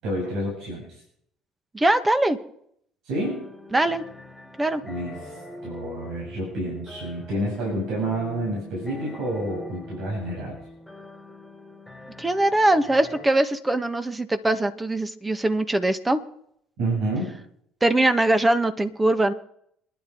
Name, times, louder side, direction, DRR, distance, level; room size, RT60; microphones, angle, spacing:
voice 1, 0.0-1.0 3.0-3.5 4.8-5.3 5.6-10.6 16.8-17.3, right 1 dB, 65° right, -3 dB, 7.3 m, -29 dB
voice 2, 1.7-2.4 3.7-4.0 4.6-4.8 12.2-16.2 17.8-19.3, right 1 dB, 15° right, 9 dB, 1.9 m, -21 dB
sound 1, 3.2-13.3, left 1 dB, 5° left, 3.7 m, -43 dB
27.5 x 11.0 x 4.8 m, 0.72 s
hypercardioid pair, 65°, 0 cm